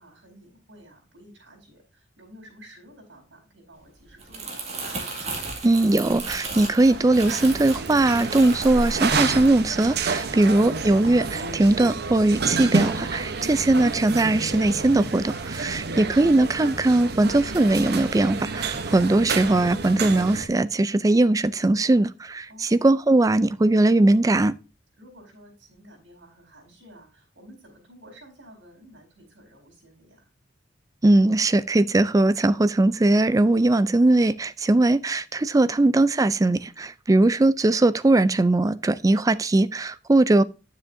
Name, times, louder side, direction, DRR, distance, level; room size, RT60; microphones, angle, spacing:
voice 1, 0.0-4.9 15.7-16.1 22.5-22.9 25.0-30.3 37.1-37.4, equal, 75° right, 4.4 m, -51 dB
Crumpling crinkling, 4.0-10.4 10.8-11.1, right 3 dB, 35° right, 2.1 m, -34 dB
voice 2, 5.6-24.5 31.0-40.4, right 2 dB, 20° right, 0.4 m, -20 dB
sound 1, 6.6-20.5, right 4 dB, 55° right, 0.9 m, -30 dB
9.8 x 7.2 x 2.6 m
head